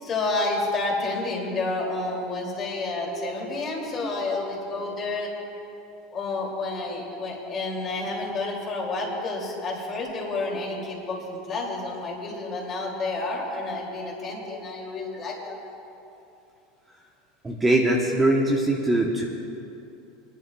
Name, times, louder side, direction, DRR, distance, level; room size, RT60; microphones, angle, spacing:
voice 1, 0.0-5.3 6.1-15.6, left 2 dB, 30° left, -2 dB, 2.4 m, -30 dB
voice 2, 17.4-19.2, right 1 dB, 10° right, -1 dB, 0.9 m, -22 dB
27.5 x 11.0 x 2.3 m, 2.8 s
supercardioid pair, 145°, 0 cm